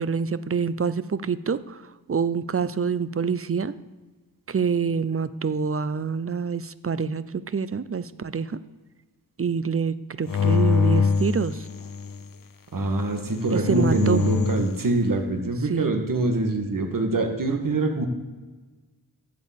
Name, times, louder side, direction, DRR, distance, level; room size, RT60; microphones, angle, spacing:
voice 1, 0.0-1.8 2.1-3.7 4.5-8.6 9.4-11.7 13.5-14.2 15.7-15.9, right 6 dB, 35° right, 14 dB, 0.6 m, -26 dB
sound 1, 10.3-12.2 13.2-14.7, left 5 dB, 60° left, 0.7 m, -24 dB
voice 2, 12.7-18.1, right 2 dB, 55° right, 4 dB, 1.8 m, -24 dB
12.5 x 5.3 x 8.2 m, 1.3 s
wide cardioid pair, 100°, 38 cm